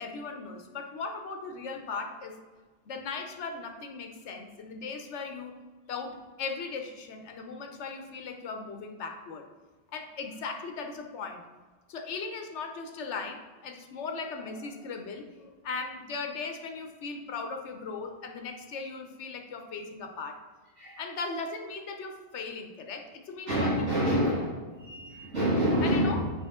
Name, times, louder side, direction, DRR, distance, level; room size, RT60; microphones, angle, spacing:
voice 1, 0.0-2.4 2.9-5.5 5.9-9.4 9.9-11.4 11.9-20.4 21.0-24.2 25.8-26.2, left 4 dB, 75° left, 5 dB, 1.1 m, -38 dB
voice 2, 23.5-26.3, equal, 85° right, -10 dB, 1.9 m, -27 dB
7.1 x 5.1 x 3.6 m, 1.3 s
omnidirectional pair, 1.2 m